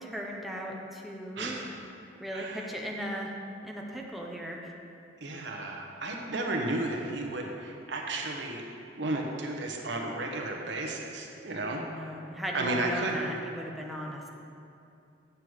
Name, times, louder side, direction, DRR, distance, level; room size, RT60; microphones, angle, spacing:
voice 1, 0.0-1.6 2.2-3.3 3.6-4.7 11.7-14.4, equal, ahead, -1 dB, 0.8 m, -37 dB
voice 2, 1.4-1.7 2.3-2.7 5.2-8.6 9.0-11.8 12.5-13.2, right 2 dB, 75° right, 1 dB, 1.0 m, -33 dB
7.8 x 6.8 x 4.8 m, 2.6 s
head